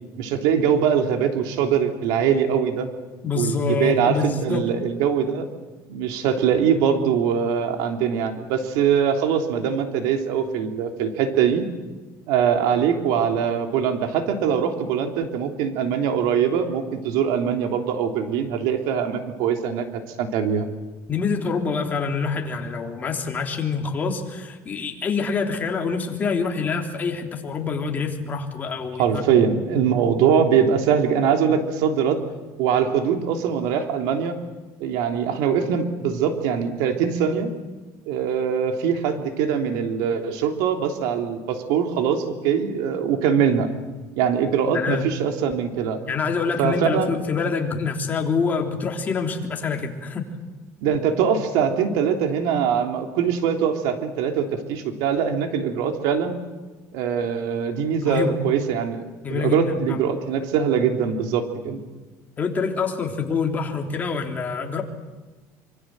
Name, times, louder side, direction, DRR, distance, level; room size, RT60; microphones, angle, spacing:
voice 1, 0.2-2.9 3.3-5.5 5.9-11.6 12.3-20.7 29.0-32.2 32.6-34.3 34.8-37.5 38.1-43.7 44.2-46.0 46.6-47.1 50.8-56.4 56.9-59.0 59.3-61.8, right 7 dB, 80° right, 4 dB, 3.3 m, -22 dB
voice 2, 3.2-4.7 21.1-29.2 44.7-45.1 46.1-50.3 58.0-58.4 59.2-60.0 62.4-64.8, left 5 dB, 25° left, 2 dB, 3.4 m, -26 dB
26.0 x 24.5 x 7.8 m, 1.2 s
cardioid pair, 145°, 7 cm